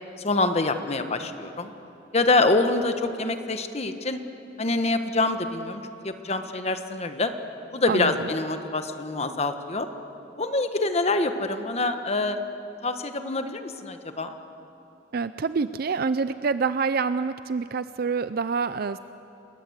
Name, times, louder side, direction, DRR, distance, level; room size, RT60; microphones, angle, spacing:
voice 1, 0.2-1.7 2.1-4.2 4.6-7.3 7.7-9.9 10.4-12.4 12.8-14.3, left 2 dB, 35° left, 8 dB, 1.3 m, -25 dB
voice 2, 15.1-19.0, right 5 dB, 55° right, 13 dB, 0.5 m, -26 dB
27.5 x 20.0 x 8.1 m, 2.9 s
head